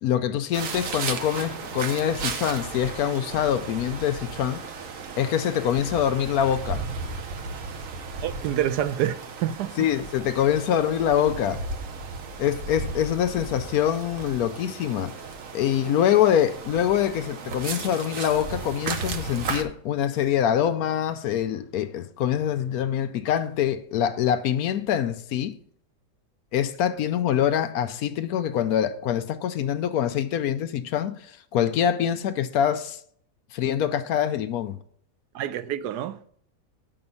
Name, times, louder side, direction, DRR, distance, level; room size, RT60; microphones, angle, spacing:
voice 1, 0.0-4.6 5.2-6.8 9.8-11.6 12.4-15.2 15.5-25.5 26.5-31.2 31.5-33.0 33.5-34.8, left 9 dB, 75° left, 1.0 m, -24 dB
sound 1, 0.5-19.6, right 4 dB, 60° right, 1.2 m, -35 dB
voice 2, 8.2-9.7 35.3-36.3, right 11 dB, 85° right, 1.2 m, -27 dB
7.9 x 5.5 x 5.4 m
omnidirectional pair, 1.7 m